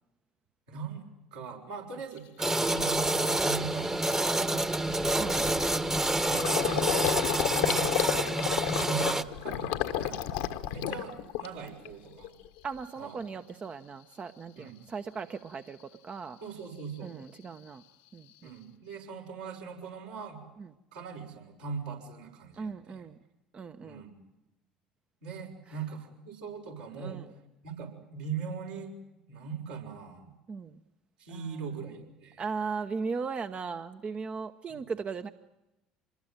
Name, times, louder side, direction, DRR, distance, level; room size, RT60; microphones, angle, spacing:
voice 1, 0.7-3.9 4.2-4.6 6.2-6.9 7.3-9.1 9.4-12.3 13.0-13.2 14.6-14.8 16.4-17.1 18.4-20.4 20.9-23.1 23.8-24.1 25.2-27.2 27.6-28.9 29.3-30.3 31.2-32.4 34.7-34.8, right 6 dB, 75° right, -2 dB, 5.9 m, -41 dB
Gurgling, 2.2-2.3 2.8-3.0 3.4-3.6 3.8-11.9 12.2-12.8, left 12 dB, 70° left, 1.4 m, -32 dB
sound 1, 2.4-9.2, right 2 dB, 15° right, 1.3 m, -28 dB
voice 2, 5.1-5.5 12.6-15.8 16.0-16.4 17.0-17.8 18.1-18.5 20.6-20.7 22.6-23.2 23.5-24.0 27.0-27.3 30.5-30.8 31.3-31.6 32.4-35.3, right 5 dB, 35° right, 8 dB, 1.0 m, -37 dB
27.0 x 21.0 x 9.1 m, 0.94 s
figure-of-eight pair, 60°, 4 cm